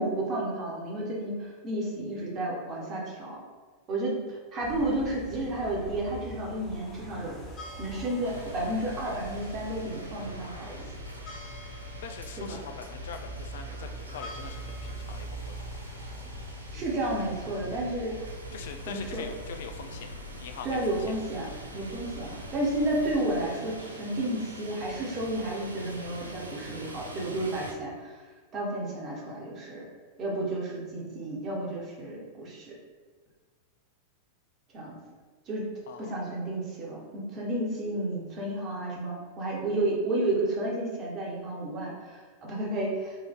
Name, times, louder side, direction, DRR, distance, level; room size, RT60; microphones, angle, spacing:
voice 1, 0.0-3.4 3.9-7.4 7.8-10.7 12.4-12.6 16.7-18.3 18.8-19.2 20.6-21.5 21.7-28.1 28.5-29.8 30.2-32.7 34.7-34.9 35.5-35.7 36.0-43.2, right 1 dB, 35° right, -3 dB, 1.3 m, -32 dB
sound 1, 4.6-23.4, equal, 35° left, 1.1 m, -42 dB
sound 2, 8.2-27.7, right 2 dB, 80° right, 0.5 m, -45 dB
voice 2, 12.0-15.8 18.5-20.1 20.4-20.8 35.9-36.2, left 7 dB, 55° left, 6 dB, 0.3 m, -43 dB
4.6 x 2.7 x 3.6 m, 1.5 s
figure-of-eight pair, 90°, 0 cm